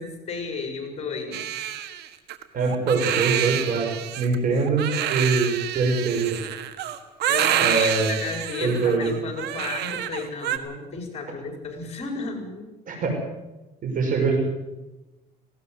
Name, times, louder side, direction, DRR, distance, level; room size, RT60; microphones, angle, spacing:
voice 1, 0.0-1.6 7.2-12.7, left 4 dB, 40° left, 3 dB, 5.4 m, -33 dB
Crying sobbing, 1.3-10.6, right 11 dB, 80° right, 1.7 m, -28 dB
voice 2, 2.5-3.9 4.2-6.4 7.6-8.1 8.6-9.1 12.9-13.2 13.8-14.4, right 4 dB, 50° right, 3 dB, 6.6 m, -23 dB
19.0 x 17.5 x 7.9 m, 1.1 s
cardioid pair, 110°, 17 cm